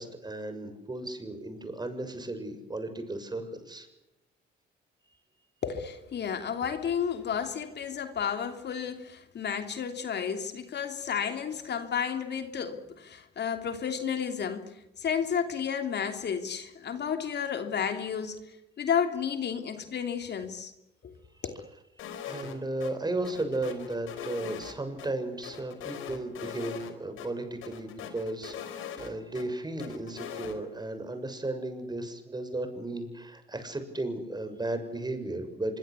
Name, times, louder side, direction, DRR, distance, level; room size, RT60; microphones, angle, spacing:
voice 1, 0.0-3.9 22.2-35.8, right 2 dB, 20° right, 6.7 m, -35 dB
voice 2, 5.6-18.4 18.8-20.7 21.0-21.2 21.4-21.6, left 7 dB, 60° left, 3.1 m, -32 dB
sound 1, 22.0-22.5 22.8-22.9 23.2-25.1 25.4-26.9 27.2-27.3 27.6-29.4 29.8-30.6, left 8 dB, 85° left, 4.8 m, -41 dB
25.5 x 24.0 x 8.4 m
cardioid pair, 90°, 20 cm